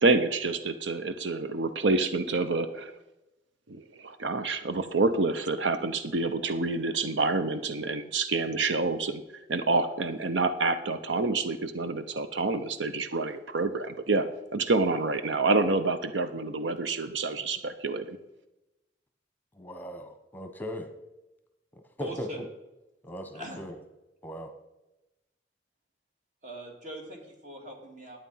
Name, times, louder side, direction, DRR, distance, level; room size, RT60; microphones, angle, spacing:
voice 1, 0.0-2.9 3.7-9.2 9.5-14.3 14.5-18.2, right 3 dB, 90° right, 10 dB, 0.7 m, -27 dB
voice 2, 19.6-20.9 22.0-22.3 23.0-23.7 24.2-24.5, equal, 10° left, 6 dB, 1.0 m, -38 dB
voice 3, 22.0-22.5 23.3-23.6 26.4-28.2, right 1 dB, 45° right, 2 dB, 2.6 m, -41 dB
11.5 x 8.8 x 5.6 m, 0.97 s
head